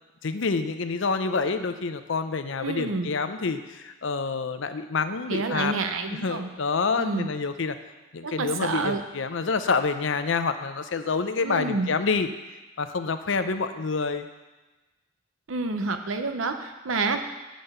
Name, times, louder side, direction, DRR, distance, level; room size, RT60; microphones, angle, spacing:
voice 1, 0.2-5.7 6.1-7.8 8.1-12.3 12.8-14.3, left 4 dB, 65° left, 9 dB, 0.6 m, -27 dB
voice 2, 2.6-3.1 5.3-6.5 7.0-7.3 8.2-9.0 11.4-11.9 15.5-17.2, right 3 dB, 80° right, 7 dB, 0.8 m, -28 dB
9.0 x 5.1 x 6.7 m, 1.1 s
head